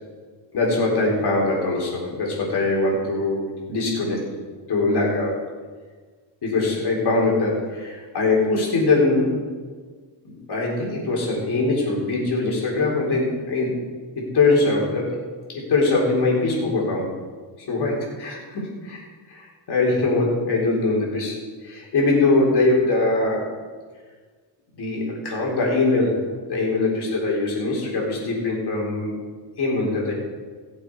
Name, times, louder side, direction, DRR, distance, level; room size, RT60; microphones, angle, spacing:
voice 1, 0.5-4.3 4.7-5.4 6.4-9.4 10.2-13.8 14.2-15.2 15.5-17.1 17.7-19.0 19.3-21.4 21.6-23.5 24.8-26.2 26.5-29.2 29.6-30.1, left 3 dB, 60° left, -2 dB, 4.1 m, -22 dB
17.0 x 7.3 x 4.8 m, 1.5 s
cardioid pair, 115°, 45 cm